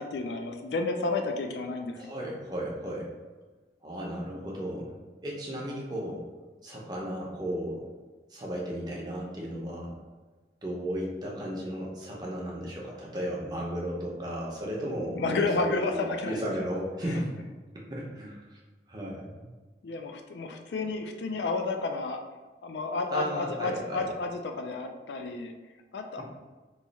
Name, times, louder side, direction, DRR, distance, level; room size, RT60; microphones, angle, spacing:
voice 1, 0.0-2.0 15.1-16.4 19.8-22.2 22.6-25.5 25.9-26.2, left 3 dB, 75° left, 5 dB, 0.4 m, -31 dB
voice 2, 2.0-3.1 3.8-5.0 5.2-6.3 6.6-7.9 8.3-10.0 10.6-15.5 15.9-17.4 17.7-18.6 18.9-19.5 23.1-24.1, equal, 25° right, -3 dB, 0.6 m, -35 dB
3.0 x 2.3 x 4.0 m, 1.3 s
head